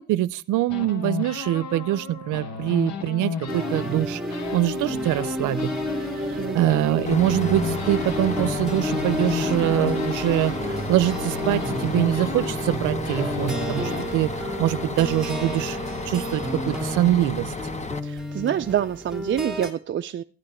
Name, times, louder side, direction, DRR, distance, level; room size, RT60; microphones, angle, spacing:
voice 1, 0.0-4.2 4.5-5.8 6.2-14.3 14.6-15.8 16.1-17.5, right 14 dB, 85° right, 0.6 m, -24 dB
sound 1, 0.7-4.1 4.3-14.0, left 6 dB, 65° left, 1.3 m, -34 dB
sound 2, 3.5-19.7, equal, ahead, 2.0 m, -30 dB
voice 2, 6.4-6.7 18.0-20.2, right 10 dB, 40° right, 0.4 m, -27 dB
Bus, 7.1-18.0, left 4 dB, 25° left, 1.0 m, -34 dB
12.5 x 9.1 x 4.2 m
cardioid pair, 90°, 30 cm